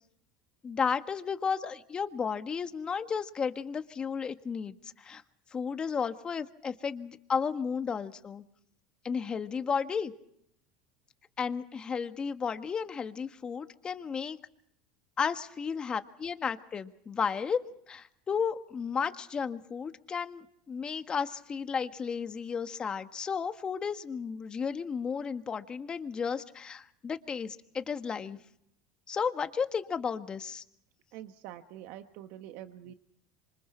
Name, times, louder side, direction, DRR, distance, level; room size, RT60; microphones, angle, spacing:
voice 1, 0.6-5.2 5.5-8.4 9.0-10.1 11.4-14.4 15.2-28.4 29.1-30.6, left 6 dB, 30° left, 9 dB, 1.5 m, -33 dB
voice 2, 31.1-32.9, right 12 dB, 70° right, 8 dB, 1.3 m, -45 dB
27.5 x 25.0 x 4.5 m, 0.72 s
supercardioid pair, 110°, 3 cm